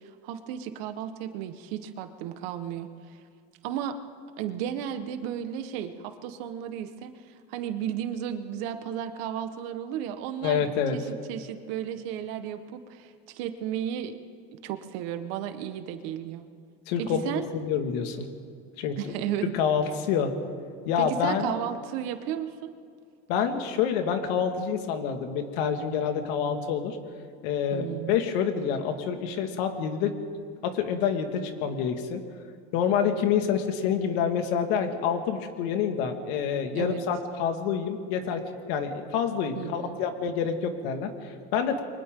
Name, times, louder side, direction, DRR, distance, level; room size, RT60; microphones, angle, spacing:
voice 1, 0.2-2.9 3.6-3.9 4.4-7.1 7.5-14.1 14.6-16.4 17.0-17.5 19.0-19.5 21.0-22.7 27.7-28.2 36.7-37.0 39.5-40.0, right 10 dB, 85° right, 8 dB, 1.6 m, -34 dB
voice 2, 10.4-11.0 16.9-18.3 18.8-19.1 19.5-20.3 20.9-21.5 23.3-27.0 27.4-30.2 30.6-32.2 32.7-41.8, left 7 dB, 85° left, 5 dB, 2.2 m, -27 dB
30.0 x 23.5 x 3.9 m, 2.3 s
cardioid pair, 155°, 29 cm